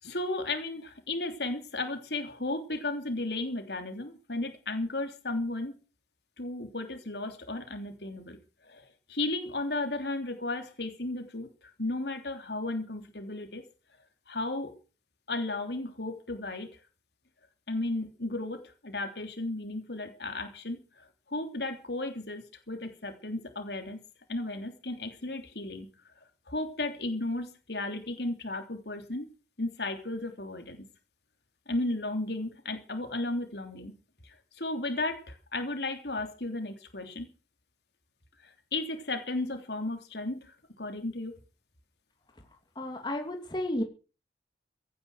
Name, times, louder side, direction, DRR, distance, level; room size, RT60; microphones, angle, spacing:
voice 1, 0.0-5.8 6.4-8.4 8.6-11.5 11.8-13.6 14.3-14.7 15.3-16.7 17.7-24.0 24.3-25.9 26.5-29.3 29.6-30.8 31.7-33.9 34.2-37.3 38.4-41.4, left 2 dB, 70° left, 6 dB, 3.3 m, -34 dB
voice 2, 42.3-43.8, left 1 dB, 25° left, 3 dB, 2.7 m, -33 dB
17.0 x 10.5 x 6.4 m, 0.36 s
head